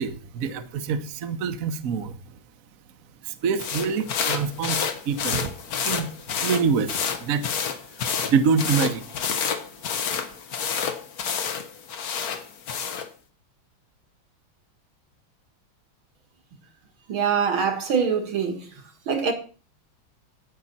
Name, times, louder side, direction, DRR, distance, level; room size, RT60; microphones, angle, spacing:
voice 1, 0.0-2.4 3.2-5.5 5.8-6.1 6.4-7.5 8.3-9.1, right 6 dB, 55° right, 1.1 m, -26 dB
sound 1, 3.6-13.1, left 7 dB, 55° left, 1.4 m, -29 dB
voice 2, 17.1-18.7 19.1-19.3, right 6 dB, 85° right, 2.6 m, -24 dB
16.0 x 5.8 x 4.1 m
omnidirectional pair, 2.2 m